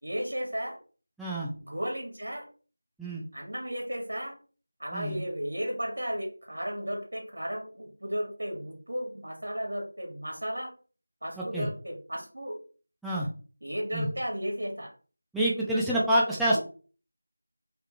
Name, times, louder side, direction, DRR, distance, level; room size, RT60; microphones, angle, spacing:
voice 1, 0.0-0.8 1.5-2.5 3.3-4.4 4.8-10.7 11.2-12.6 13.6-14.9 16.4-16.6, equal, 75° right, 1 dB, 2.0 m, -34 dB
voice 2, 1.2-1.5 3.0-3.2 4.9-5.2 11.4-11.7 13.0-13.3 13.9-14.1 15.3-16.6, right 1 dB, ahead, -8 dB, 0.4 m, -27 dB
3.7 x 3.2 x 3.3 m, 0.38 s
figure-of-eight pair, 175°, 0 cm